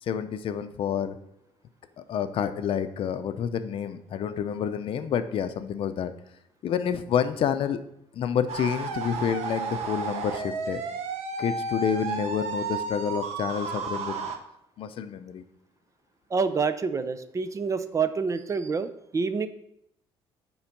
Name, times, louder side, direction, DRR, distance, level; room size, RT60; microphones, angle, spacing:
voice 1, 0.0-1.2 2.0-6.1 6.6-7.8 8.1-10.8 11.4-14.3 14.8-15.4, left 8 dB, 55° left, 11 dB, 0.6 m, -28 dB
sound 1, 8.5-14.4, right 4 dB, 80° right, 1.0 m, -32 dB
voice 2, 16.3-19.5, right 5 dB, 30° right, 11 dB, 0.5 m, -27 dB
9.6 x 3.9 x 5.9 m, 0.77 s
cardioid pair, 125°, 11 cm